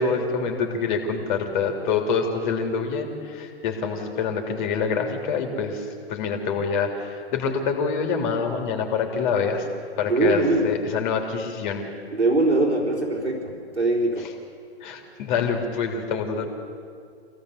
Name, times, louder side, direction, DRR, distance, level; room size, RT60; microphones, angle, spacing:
voice 1, 0.0-9.7 10.0-11.8 14.8-16.5, left 5 dB, 45° left, 3 dB, 3.4 m, -26 dB
voice 2, 10.0-10.8 12.1-14.3, right 2 dB, 85° right, -1 dB, 3.9 m, -22 dB
25.0 x 17.0 x 8.2 m, 2.3 s
figure-of-eight pair, 115°, 33 cm